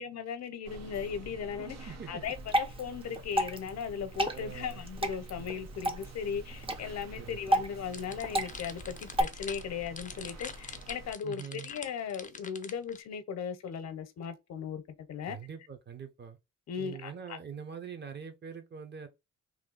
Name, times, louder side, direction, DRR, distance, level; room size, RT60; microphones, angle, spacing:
voice 1, 0.0-14.8 15.1-15.4 16.7-17.4, left 7 dB, 60° left, 0.8 m, -37 dB
sound 1, 0.6-11.1, right 1 dB, 60° right, 1.0 m, -48 dB
voice 2, 1.9-2.2 4.3-4.9 7.2-7.6 11.2-11.7 15.3-16.4 16.8-19.1, right 7 dB, 35° right, 1.0 m, -44 dB
Water / Drip, 2.2-9.2, equal, 20° right, 0.7 m, -33 dB
sound 2, 7.9-13.0, left 5 dB, 25° left, 0.6 m, -44 dB
3.1 x 2.6 x 3.9 m
cardioid pair, 90°, 30 cm